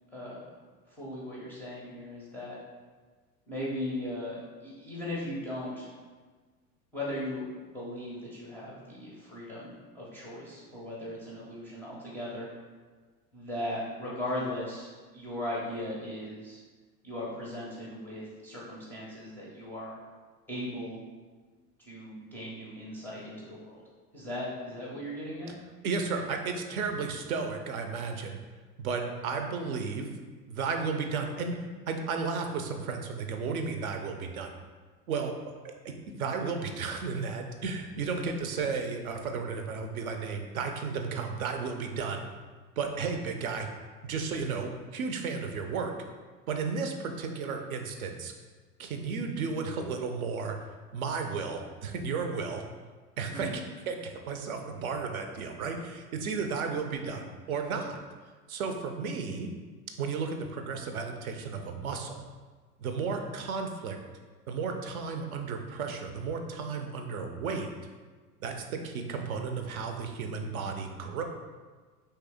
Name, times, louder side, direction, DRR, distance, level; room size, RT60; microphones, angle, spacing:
voice 1, 0.1-0.4 0.9-2.6 3.5-5.9 6.9-12.5 13.3-16.6 17.0-20.0 20.5-21.0 21.8-23.8 24.1-25.5 53.3-53.6, left 1 dB, 5° left, -7 dB, 0.4 m, -38 dB
voice 2, 25.8-28.4 28.8-30.1 30.5-34.5 35.1-42.3 42.8-43.7 44.0-45.9 46.5-48.3 48.8-50.6 50.9-52.6 53.2-53.5 53.9-58.0 58.5-59.5 60.0-62.2 62.8-64.0 64.5-67.7 68.4-71.2, right 5 dB, 65° right, 4 dB, 0.6 m, -33 dB
3.2 x 2.7 x 3.4 m, 1.4 s
figure-of-eight pair, 80°, 48 cm